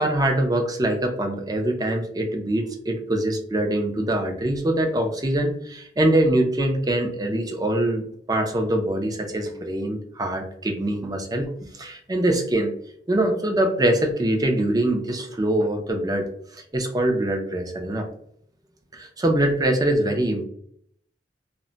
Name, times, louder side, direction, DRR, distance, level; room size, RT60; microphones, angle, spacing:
voice 1, 0.0-12.7 13.1-16.3 16.5-18.1 18.9-20.5, right 1 dB, 20° right, 4 dB, 0.5 m, -23 dB
2.2 x 2.1 x 3.8 m, 0.66 s
head